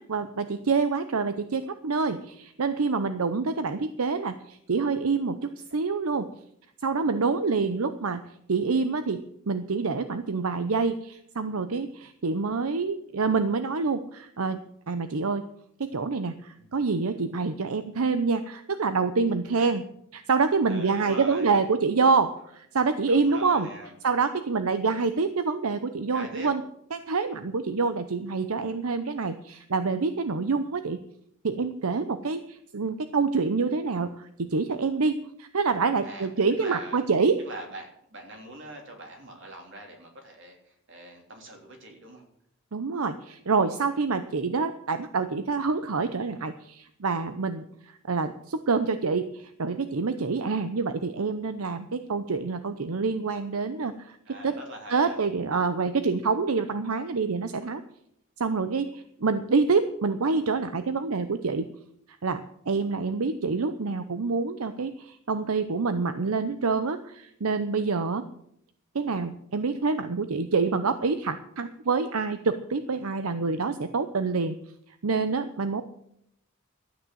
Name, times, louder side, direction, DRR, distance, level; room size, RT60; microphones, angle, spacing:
voice 1, 0.0-6.3 6.8-8.2 8.5-14.6 14.9-15.4 15.8-19.8 20.1-23.7 24.0-26.6 26.9-31.0 31.4-37.4 42.7-54.2 54.4-54.6 54.9-57.8 58.4-61.7 62.2-68.3 68.9-74.6 75.0-75.8, right 4 dB, 80° right, 11 dB, 0.7 m, -27 dB
voice 2, 20.6-21.5 23.0-24.0 26.1-26.5 36.0-36.3 36.6-37.0 37.4-42.2 54.2-55.2, right 1 dB, 55° right, 2 dB, 3.3 m, -42 dB
13.0 x 9.1 x 7.7 m, 0.74 s
head